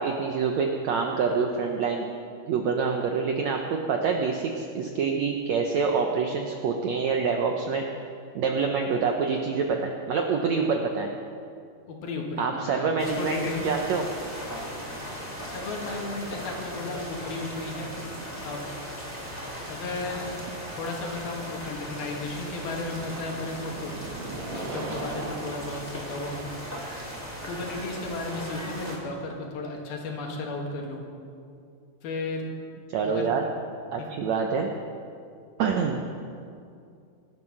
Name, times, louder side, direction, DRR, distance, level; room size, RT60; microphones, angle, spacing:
voice 1, 0.0-2.1 2.5-7.8 8.4-11.1 12.4-14.1 32.9-33.4 33.9-34.7 35.6-36.0, right 5 dB, 80° right, 3 dB, 1.6 m, -26 dB
voice 2, 11.9-13.6 15.4-17.9 18.4-18.7 19.7-20.4 20.7-24.0 24.4-26.8 27.5-31.0 32.0-32.5 33.0-33.4 34.0-34.1, left 2 dB, 80° left, 0 dB, 3.8 m, -34 dB
sound 1, 13.0-29.0, equal, 5° left, 2.9 m, -38 dB
sound 2, 20.2-28.8, right 3 dB, 55° right, 2.5 m, -41 dB
22.5 x 9.3 x 6.4 m, 2.5 s
omnidirectional pair, 4.3 m